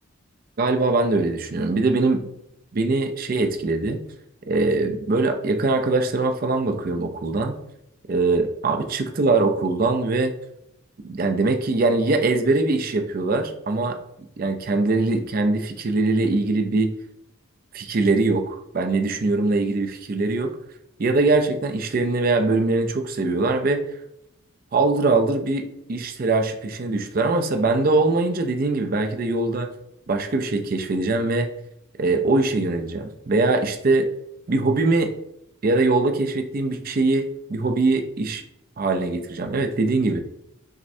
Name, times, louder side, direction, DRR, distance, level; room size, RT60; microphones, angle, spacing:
voice 1, 0.6-2.3 2.7-4.0 4.5-7.6 8.1-10.3 11.0-14.0 14.4-16.9 17.7-20.6 21.0-23.8 24.7-29.7 30.1-31.5 32.0-34.1 34.5-35.1 35.6-37.2 37.5-38.4 38.8-40.2, right 3 dB, 40° right, 6 dB, 0.4 m, -22 dB
6.0 x 2.1 x 2.6 m, 0.80 s
head